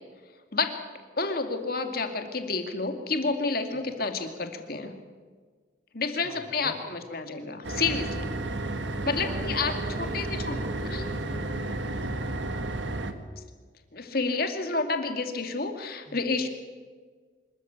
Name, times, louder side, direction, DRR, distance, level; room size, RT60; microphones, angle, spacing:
voice 1, 1.2-4.9 5.9-8.3 9.1-9.7 10.0-10.6 10.9-11.0 13.9-16.5, left 4 dB, 50° left, 5 dB, 2.4 m, -29 dB
voice 2, 6.2-7.1 9.2-12.6 16.1-16.4, right 1 dB, 20° right, -3 dB, 4.0 m, -45 dB
sound 1, 7.6-13.1, right 2 dB, 70° right, 1.7 m, -32 dB
25.5 x 14.0 x 9.3 m, 1.5 s
head